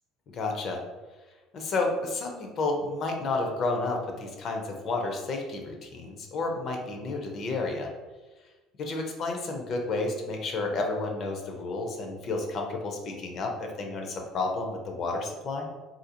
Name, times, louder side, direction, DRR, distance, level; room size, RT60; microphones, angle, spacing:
voice 1, 0.3-0.8 1.5-7.9 8.8-15.7, left 3 dB, 35° left, 2 dB, 0.4 m, -31 dB
3.6 x 2.4 x 2.7 m, 1.2 s
cardioid pair, 180°, 0 cm